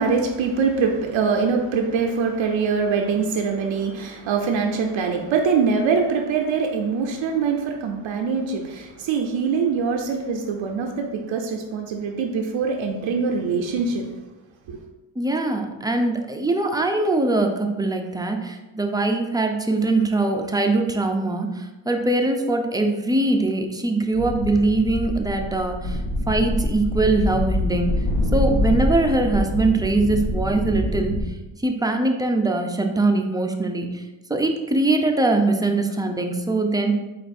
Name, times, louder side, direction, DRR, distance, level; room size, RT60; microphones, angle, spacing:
voice 1, 0.0-14.1 14.7-14.8, right 5 dB, 85° right, 3 dB, 0.6 m, -23 dB
voice 2, 15.2-27.9 28.3-31.2 31.6-34.0 34.3-36.9, right 2 dB, 10° right, 3 dB, 0.5 m, -22 dB
sound 1, 24.1-31.2, left 1 dB, 80° left, 1.3 m, -25 dB
4.5 x 2.6 x 4.1 m, 1.1 s
cardioid pair, 65°, 45 cm